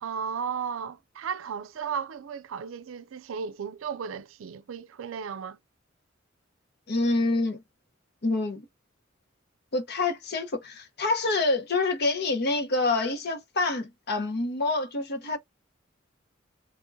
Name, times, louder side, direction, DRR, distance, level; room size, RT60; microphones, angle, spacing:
voice 1, 0.0-5.6, right 6 dB, 80° right, 0.4 m, -35 dB
voice 2, 6.9-7.6 8.2-8.7 9.7-15.4, left 3 dB, 55° left, 0.9 m, -27 dB
3.6 x 3.5 x 2.6 m
head